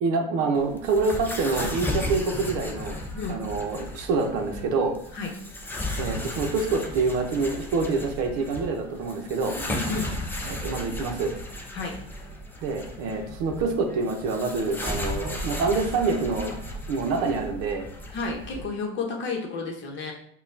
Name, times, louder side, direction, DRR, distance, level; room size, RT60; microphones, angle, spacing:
voice 1, 0.0-3.0 3.3-4.9 6.0-9.5 10.5-11.3 12.6-16.5 16.9-17.9, right 4 dB, 50° right, 3 dB, 0.8 m, -26 dB
sound 1, 0.5-18.7, left 1 dB, 5° left, 0.4 m, -35 dB
voice 2, 9.4-10.1 11.7-11.9 18.1-20.1, left 4 dB, 40° left, 1 dB, 1.0 m, -31 dB
5.3 x 2.3 x 2.6 m, 0.65 s
supercardioid pair, 120°, 30 cm